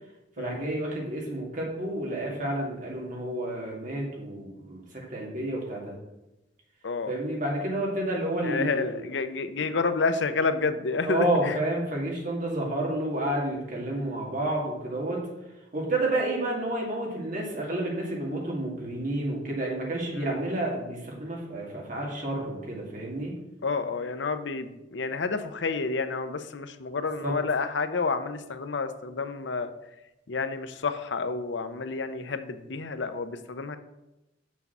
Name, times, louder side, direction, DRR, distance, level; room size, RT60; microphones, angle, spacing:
voice 1, 0.4-5.9 7.1-9.0 11.0-15.3 15.7-23.4 27.2-27.3, right 1 dB, 45° right, -2 dB, 2.4 m, -30 dB
voice 2, 8.4-11.6 20.2-20.4 23.6-29.7 30.3-33.8, left 4 dB, 75° left, 10 dB, 0.7 m, -29 dB
6.9 x 6.3 x 6.0 m, 0.95 s
head